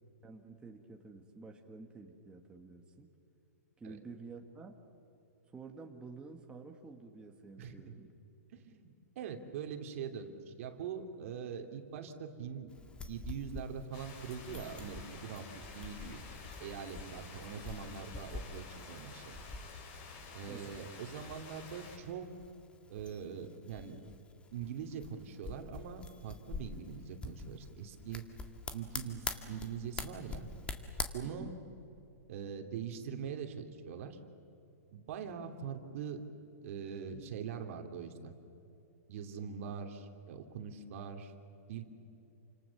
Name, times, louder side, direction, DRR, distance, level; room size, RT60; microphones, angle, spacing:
voice 1, 0.2-3.1 3.8-4.8 5.5-8.1 20.4-20.8 31.2-31.6, right 4 dB, 10° right, 2 dB, 1.9 m, -50 dB
voice 2, 7.6-7.9 8.5-8.9 9.2-12.7 13.1-16.2 16.6-19.3 20.3-22.3 22.9-24.0 24.5-28.3 28.7-30.5 31.1-31.5 32.3-34.2 34.9-36.2 36.6-38.3 39.1-41.3 41.7-41.9, right 7 dB, 55° right, 5 dB, 2.8 m, -43 dB
sound 1, 12.7-31.0, left 4 dB, 10° left, 1.9 m, -46 dB
sound 2, 13.9-22.0, left 4 dB, 45° left, 6.6 m, -50 dB
29.0 x 26.5 x 7.2 m, 2.8 s
hypercardioid pair, 140°, 9 cm